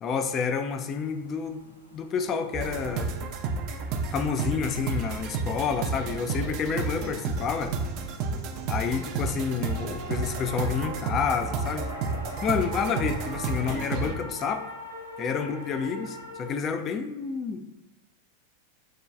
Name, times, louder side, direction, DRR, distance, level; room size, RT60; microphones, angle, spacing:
voice 1, 0.0-3.1 4.1-7.8 8.7-11.9 12.4-14.7 15.2-17.7, left 6 dB, 30° left, 7 dB, 0.3 m, -29 dB
sound 1, 0.9-16.5, equal, 85° left, 0.6 m, -44 dB
sound 2, 2.5-14.1, right 4 dB, 40° right, 0.4 m, -31 dB
6.2 x 2.2 x 2.3 m, 0.95 s
figure-of-eight pair, 90°, 0 cm